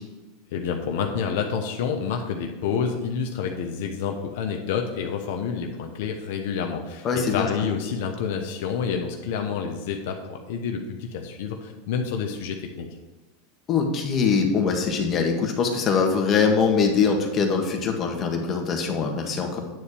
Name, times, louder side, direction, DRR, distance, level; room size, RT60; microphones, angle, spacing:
voice 1, 0.5-12.9, left 6 dB, 70° left, 3 dB, 1.0 m, -28 dB
voice 2, 7.0-7.5 13.7-19.6, left 5 dB, 30° left, 3 dB, 1.7 m, -23 dB
9.3 x 4.3 x 6.9 m, 1.2 s
supercardioid pair, 125°, 0 cm